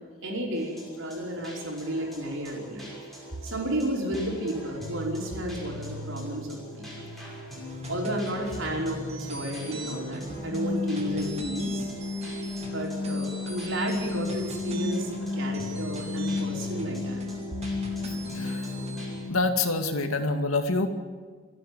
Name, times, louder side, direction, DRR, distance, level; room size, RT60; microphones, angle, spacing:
voice 1, 0.2-2.9 3.4-7.1 7.9-11.9 12.6-17.4, right 1 dB, 70° right, -1 dB, 5.3 m, -32 dB
sound 1, 0.5-19.3, left 3 dB, ahead, 6.2 m, -35 dB
sound 2, 7.7-19.1, right 2 dB, 30° right, 2.6 m, -43 dB
voice 2, 19.3-20.9, left 3 dB, 85° left, 6 dB, 2.2 m, -26 dB
28.0 x 10.0 x 9.7 m, 1.5 s
head